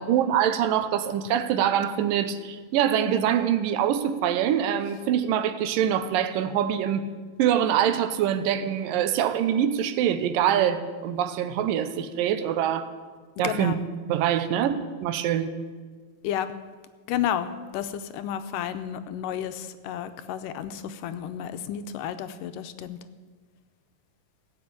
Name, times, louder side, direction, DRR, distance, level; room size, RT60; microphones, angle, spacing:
voice 1, 0.0-7.1 7.4-12.9 13.4-13.8 14.1-15.5, right 9 dB, 80° right, 11 dB, 2.5 m, -24 dB
voice 2, 13.4-13.7 16.2-16.5 17.1-23.0, left 10 dB, 80° left, 10 dB, 2.2 m, -31 dB
16.0 x 7.9 x 8.8 m, 1.5 s
omnidirectional pair, 4.0 m